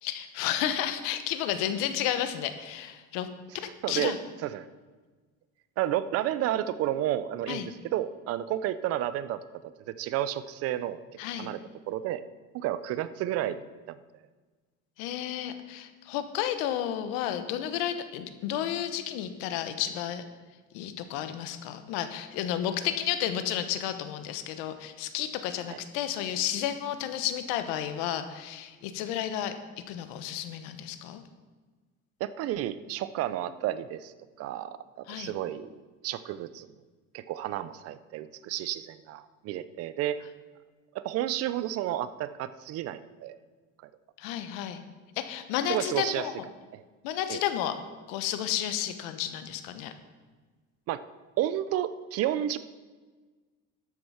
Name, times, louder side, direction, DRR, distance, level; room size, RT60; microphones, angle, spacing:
voice 1, 0.0-3.3 3.5-4.2 7.5-7.7 11.2-11.5 15.0-20.2 20.7-29.5 29.9-31.2 35.1-35.3 44.2-44.8 45.2-46.5 47.0-47.8 48.1-49.9, left 11 dB, 85° left, 10 dB, 1.1 m, -32 dB
voice 2, 3.6-4.1 4.4-4.7 5.8-11.0 11.4-11.6 11.9-12.2 12.5-14.0 25.7-25.8 32.2-34.1 34.4-35.7 36.0-36.7 37.1-40.2 40.9-43.4 45.7-46.3 46.7-46.8 47.3-47.4 50.9-51.0 51.4-52.6, right 12 dB, 50° right, 15 dB, 0.6 m, -31 dB
12.0 x 7.8 x 5.7 m, 1.4 s
cardioid pair, 160°, 31 cm